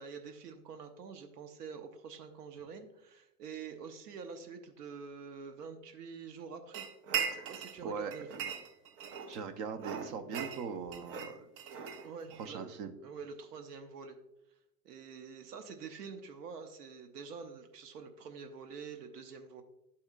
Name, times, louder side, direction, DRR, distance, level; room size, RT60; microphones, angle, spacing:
voice 1, 0.0-6.8 7.3-8.5 12.0-12.7 13.0-14.2 14.8-19.6, right 5 dB, 90° right, 6 dB, 0.9 m, -46 dB
sound 1, 6.7-7.8 8.1-9.4 9.8-12.5, right 7 dB, 70° right, 1.0 m, -39 dB
voice 2, 7.3-8.1 9.3-11.5 12.4-12.9, right 6 dB, 40° right, 8 dB, 0.9 m, -41 dB
11.5 x 4.3 x 2.5 m, 0.87 s
hypercardioid pair, 115°, 47 cm